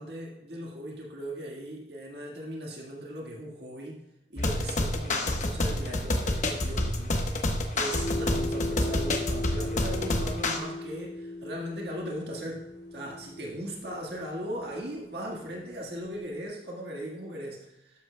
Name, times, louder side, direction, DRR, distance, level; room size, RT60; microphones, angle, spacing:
voice 1, 0.0-4.0 4.3-12.7 12.9-17.7, equal, 70° right, -2 dB, 1.6 m, -38 dB
sound 1, 4.4-10.6, left 1 dB, 45° left, 1.1 m, -28 dB
Swallowtail Lighthouse Old Fog Bell, 7.9-16.4, left 1 dB, 65° left, 2.3 m, -38 dB
13.0 x 10.5 x 2.2 m, 0.92 s
head